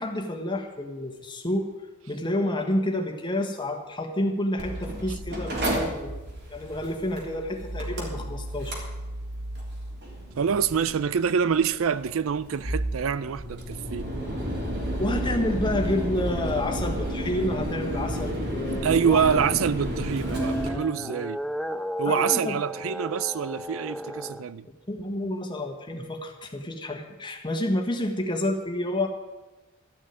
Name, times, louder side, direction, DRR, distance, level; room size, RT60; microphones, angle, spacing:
voice 1, 0.0-1.7 2.1-6.2 6.5-8.7 15.0-19.4 22.0-22.6 24.9-29.1, left 1 dB, 20° left, 1.5 m, -29 dB
Mechanical fan, 4.6-20.7, equal, 55° right, 3.4 m, -32 dB
voice 2, 10.4-14.1 18.8-21.4 22.0-24.6, right 7 dB, 70° right, 0.4 m, -26 dB
sound 1, 20.1-24.4, equal, ahead, 0.3 m, -33 dB
13.5 x 6.3 x 9.3 m
head